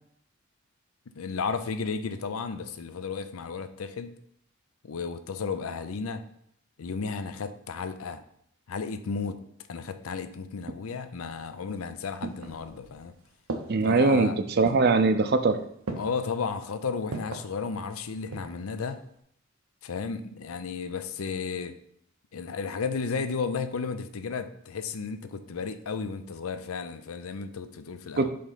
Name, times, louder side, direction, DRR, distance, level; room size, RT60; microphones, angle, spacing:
voice 1, 1.2-4.1 4.8-6.2 6.8-8.2 8.7-9.4 9.7-13.1 13.8-14.4 16.0-19.0 19.8-21.7 22.3-28.3, left 5 dB, 85° left, 10 dB, 0.5 m, -33 dB
sound 1, 11.7-13.0 13.5-14.0 14.6-15.1 15.9-16.3 17.1-17.5 18.1-18.7 18.9-19.0, right 3 dB, 80° right, 0.8 m, -37 dB
voice 2, 13.7-15.6 28.2-28.3, right 3 dB, 50° right, 9 dB, 0.5 m, -22 dB
5.1 x 3.9 x 5.6 m, 0.70 s
head